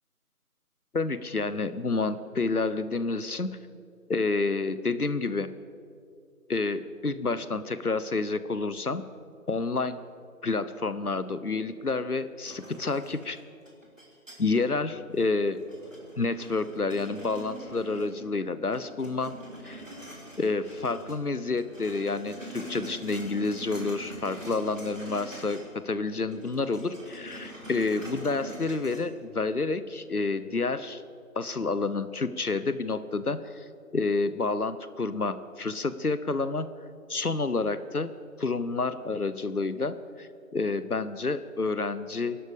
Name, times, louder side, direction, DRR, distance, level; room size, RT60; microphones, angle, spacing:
voice 1, 0.9-3.6 4.1-5.5 6.5-9.1 9.5-10.0 10.4-13.4 14.4-15.6 16.2-19.3 19.6-19.8 20.4-31.0 31.3-33.6 33.9-36.7 37.1-42.4, left 3 dB, 75° left, 14 dB, 1.0 m, -29 dB
sound 1, 12.5-14.8 15.2-18.4 18.7-21.2 21.5-25.8 26.0-29.0, right 1 dB, 55° right, 3.1 m, -44 dB
21.0 x 12.0 x 5.2 m, 2.4 s
figure-of-eight pair, 175°, 45 cm